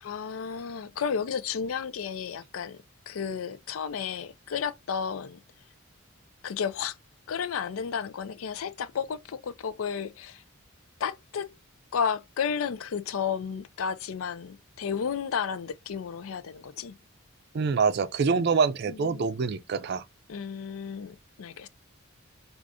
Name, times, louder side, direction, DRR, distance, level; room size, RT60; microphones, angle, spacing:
voice 1, 0.0-5.4 6.4-7.0 7.3-10.4 11.0-11.6 11.9-17.0 18.9-19.3 20.3-21.7, left 7 dB, 90° left, 0.4 m, -32 dB
voice 2, 17.5-20.0, right 5 dB, 50° right, 0.4 m, -25 dB
4.7 x 2.5 x 2.5 m
head